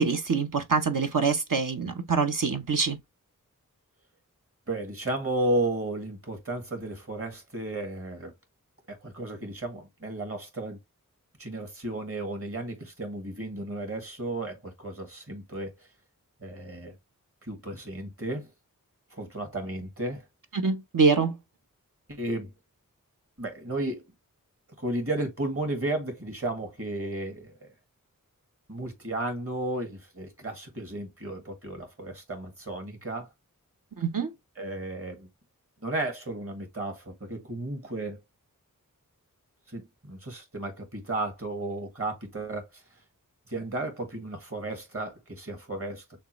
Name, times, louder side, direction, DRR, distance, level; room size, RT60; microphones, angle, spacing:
voice 1, 0.0-3.0 20.5-21.4 34.0-34.3, right 5 dB, 70° right, 1.0 m, -25 dB
voice 2, 4.7-8.3 8.9-10.8 11.4-15.7 16.4-17.0 17.4-18.5 19.1-20.2 22.1-22.5 23.4-24.0 24.8-27.7 28.7-33.3 34.6-35.3 35.8-38.2 39.7-42.8 43.5-46.2, right 1 dB, 40° right, 2.2 m, -33 dB
6.5 x 2.5 x 3.2 m
wide cardioid pair, 50°, 34 cm